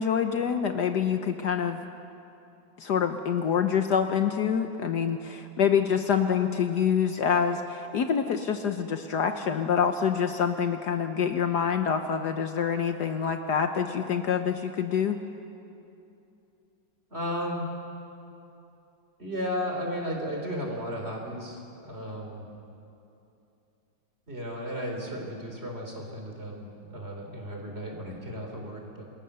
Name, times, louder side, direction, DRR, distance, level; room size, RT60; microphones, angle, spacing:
voice 1, 0.0-1.8 2.8-15.2, left 7 dB, 65° left, 7 dB, 1.4 m, -26 dB
voice 2, 17.1-17.7 19.2-22.5 24.3-29.0, equal, 30° right, 1 dB, 4.0 m, -34 dB
27.5 x 21.5 x 6.9 m, 2.8 s
omnidirectional pair, 2.1 m